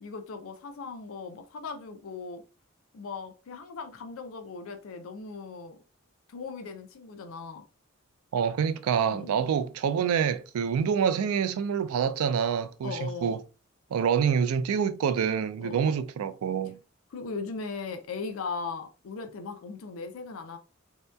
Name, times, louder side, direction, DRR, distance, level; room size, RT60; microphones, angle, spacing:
voice 1, 0.0-2.4 2.9-5.8 6.3-7.7 9.1-9.5 12.8-13.4 15.6-15.9 17.1-20.6, left 4 dB, 70° left, 0.4 m, -38 dB
voice 2, 8.3-13.4 13.9-16.8, right 7 dB, 90° right, 0.3 m, -26 dB
2.7 x 2.1 x 2.2 m
head